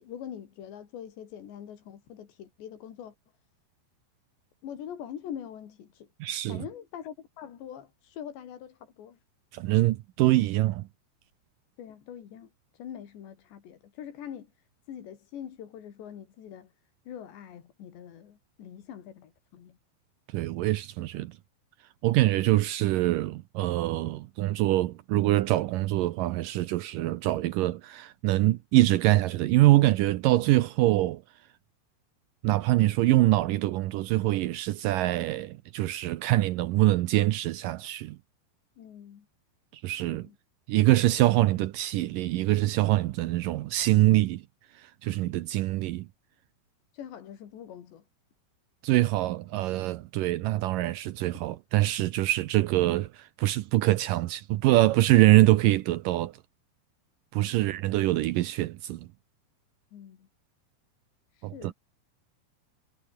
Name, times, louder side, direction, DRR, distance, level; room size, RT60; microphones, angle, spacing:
voice 1, 0.0-3.1 4.6-6.1 6.5-9.2 11.8-14.5 14.9-16.7 17.1-19.8 38.8-39.3 40.1-40.4 46.9-48.0 57.5-57.6 59.9-60.3 61.3-61.7, left 9 dB, 85° left, 5.1 m, -43 dB
voice 2, 6.2-6.6 9.5-10.9 20.3-21.3 22.0-31.2 32.4-38.2 39.7-40.3 40.7-44.4 45.0-46.1 48.8-56.3 57.3-59.0 61.4-61.7, right 16 dB, 90° right, 1.9 m, -24 dB
omnidirectional pair, 4.9 m